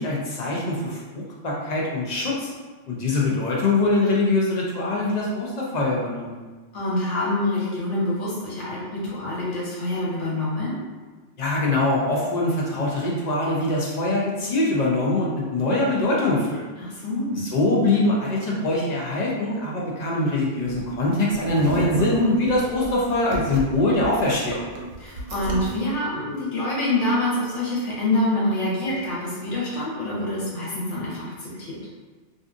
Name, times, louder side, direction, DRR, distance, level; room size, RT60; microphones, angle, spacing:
voice 1, 0.0-2.5 2.9-6.3 11.4-16.6 17.3-24.6, left 2 dB, 50° left, -4 dB, 0.5 m, -23 dB
voice 2, 6.7-10.8 16.8-17.4 25.0-31.8, left 1 dB, 80° left, -6 dB, 1.2 m, -26 dB
sound 1, 20.6-25.8, right 3 dB, 70° right, 0.8 m, -34 dB
2.6 x 2.4 x 2.4 m, 1.4 s
omnidirectional pair, 1.2 m